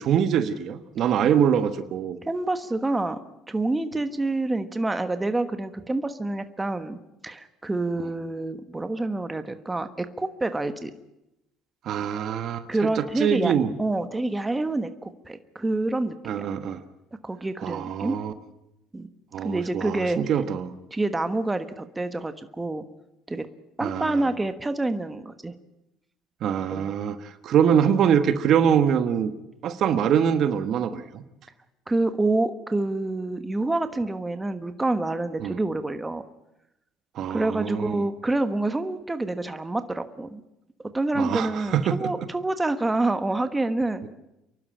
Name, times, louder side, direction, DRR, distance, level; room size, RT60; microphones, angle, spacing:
voice 1, 0.0-2.2 11.8-12.6 13.0-13.7 16.2-16.8 17.6-18.3 19.3-20.7 23.8-24.3 26.4-29.3 29.6-31.2 35.4-35.6 37.1-38.0 41.1-42.0 44.0-44.1, right 8 dB, 55° right, 11 dB, 1.4 m, -24 dB
voice 2, 2.2-3.2 3.5-7.0 7.2-10.9 12.7-13.5 13.8-16.5 17.2-18.2 18.9-19.1 19.4-20.2 20.9-22.8 23.3-23.5 23.8-25.5 26.7-26.9 31.9-36.2 37.3-40.4 40.9-44.1, right 2 dB, 15° right, 10 dB, 1.3 m, -27 dB
29.0 x 12.0 x 8.8 m, 0.88 s
supercardioid pair, 95°, 0 cm